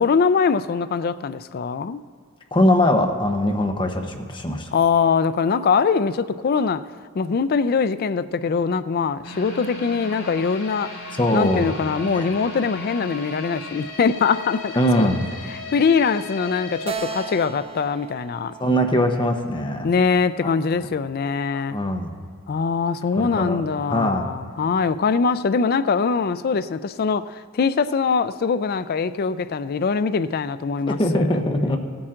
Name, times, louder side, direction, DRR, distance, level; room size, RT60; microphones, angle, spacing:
voice 1, 0.0-2.0 4.7-6.9 7.1-10.9 11.3-15.1 15.7-18.5 19.8-21.8 22.5-31.3, left 5 dB, 45° left, 0.3 m, -22 dB
voice 2, 2.5-4.7 11.2-11.7 12.1-12.3 14.8-15.3 18.6-19.9 20.4-20.5 21.5-22.1 23.2-23.6 23.9-24.2 31.0-31.8, left 1 dB, 20° left, 0.8 m, -21 dB
sound 1, 9.2-18.2 18.6-18.7 19.2-19.3, left 2 dB, 90° left, 3.3 m, -37 dB
Keyboard (musical), 16.9-20.3, right 7 dB, 25° right, 0.5 m, -37 dB
16.5 x 8.8 x 3.7 m
head